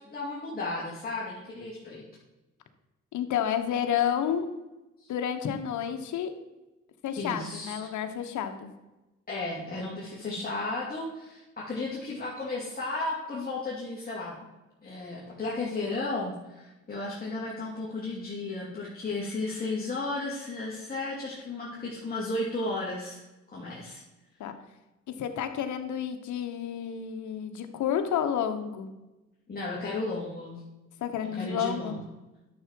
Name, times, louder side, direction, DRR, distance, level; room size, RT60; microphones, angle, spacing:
voice 1, 0.1-2.0 5.0-5.1 7.2-7.9 9.3-14.3 14.8-23.2 23.5-24.0 29.5-30.5 31.3-32.0, left 2 dB, 30° left, -6 dB, 3.0 m, -34 dB
voice 2, 3.1-4.5 5.1-6.3 7.0-8.7 24.4-24.6 25.2-28.9 31.0-32.0, left 9 dB, 75° left, 6 dB, 1.3 m, -30 dB
11.0 x 7.0 x 4.6 m, 1.0 s
cardioid pair, 90°, 30 cm